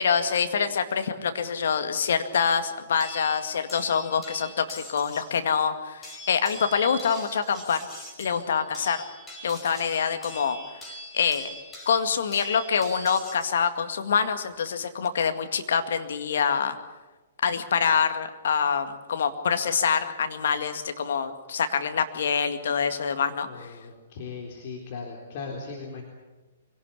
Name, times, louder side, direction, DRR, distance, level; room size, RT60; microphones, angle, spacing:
voice 1, 0.0-7.9 8.2-9.0 9.4-10.6 11.1-11.5 11.9-16.8 17.4-23.7, left 6 dB, 65° left, 8 dB, 2.1 m, -25 dB
sound 1, 3.0-5.4 6.0-13.6 14.7-15.1, equal, 15° left, 5.2 m, -43 dB
voice 2, 23.4-26.0, left 4 dB, 50° left, 1 dB, 3.8 m, -38 dB
24.0 x 18.0 x 8.4 m, 1.2 s
hypercardioid pair, 120°, 0 cm